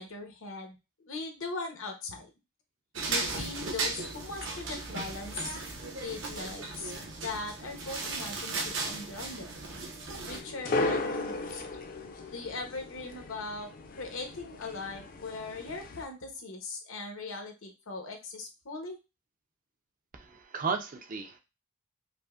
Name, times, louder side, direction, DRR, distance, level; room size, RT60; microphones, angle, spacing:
voice 1, 0.0-2.3 3.1-5.6 6.0-6.9 7.2-9.5 10.3-11.7 12.3-19.0, left 3 dB, 80° left, 3 dB, 0.9 m, -40 dB
sound 1, 3.0-10.4, right 3 dB, 60° right, 0.9 m, -36 dB
sound 2, 10.3-16.0, left 2 dB, 45° left, 0.5 m, -36 dB
voice 2, 20.1-21.4, right 5 dB, 40° right, 6 dB, 0.5 m, -34 dB
5.1 x 2.1 x 2.4 m, 0.27 s
head